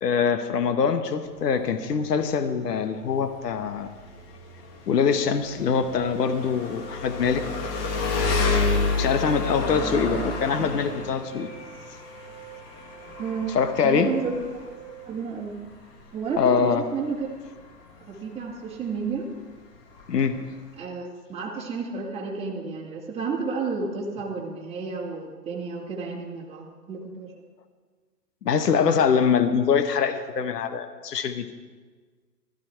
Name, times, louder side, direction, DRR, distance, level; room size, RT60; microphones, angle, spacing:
voice 1, 0.0-3.9 4.9-7.4 7.8-7.9 8.9-11.5 13.5-14.1 16.4-16.8 20.1-20.4 28.4-31.4, left 6 dB, 70° left, 9 dB, 1.4 m, -24 dB
Engine, 1.2-20.8, left 4 dB, 35° left, 2.1 m, -31 dB
Wind instrument woodwind instrument, 5.3-15.3, right 8 dB, 30° right, 2.9 m, -45 dB
voice 2, 9.8-10.3 10.6-10.7 13.2-13.5 13.8-14.3 15.1-15.6 16.1-17.3 18.0-19.3 20.8-27.3, right 5 dB, 10° right, -5 dB, 2.4 m, -31 dB
16.0 x 14.0 x 4.6 m, 1.5 s
hypercardioid pair, 120°, 49 cm